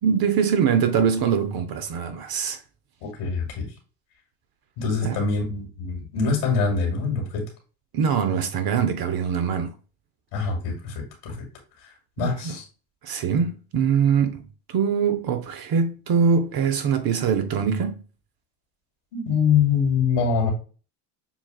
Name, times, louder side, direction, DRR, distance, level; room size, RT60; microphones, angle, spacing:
voice 1, 0.0-2.6 5.0-5.2 7.9-9.7 12.2-12.6 13.0-18.0, right 6 dB, 50° right, 0.7 m, -23 dB
voice 2, 3.0-3.7 4.8-7.4 10.3-11.4 12.2-12.6 19.1-20.5, left 5 dB, 90° left, 2.1 m, -24 dB
7.0 x 2.4 x 2.3 m
supercardioid pair, 85°, 48 cm